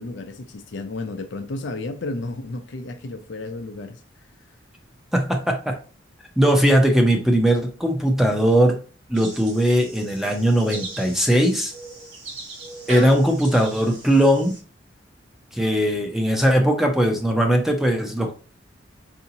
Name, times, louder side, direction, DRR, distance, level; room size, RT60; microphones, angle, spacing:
voice 1, 0.0-4.0, left 2 dB, 70° left, 0.5 m, -32 dB
voice 2, 5.1-5.8 6.4-8.8 9.1-11.7 12.9-14.5 15.5-18.3, equal, ahead, 0.6 m, -19 dB
sound 1, 9.1-14.6, right 2 dB, 90° right, 1.3 m, -38 dB
4.8 x 2.7 x 2.7 m
head